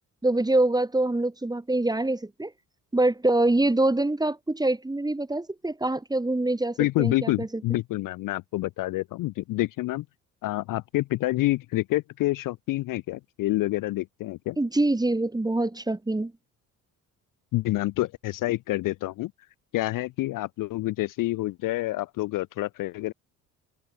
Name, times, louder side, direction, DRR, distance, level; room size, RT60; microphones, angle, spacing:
voice 1, 0.2-2.5 2.9-7.5 14.6-16.3, right 2 dB, 10° right, 0.9 m, -25 dB
voice 2, 6.8-10.1 10.4-14.6 17.5-19.3 19.7-23.1, left 18 dB, 55° left, 0.4 m, -28 dB
hypercardioid pair, 55°, 41 cm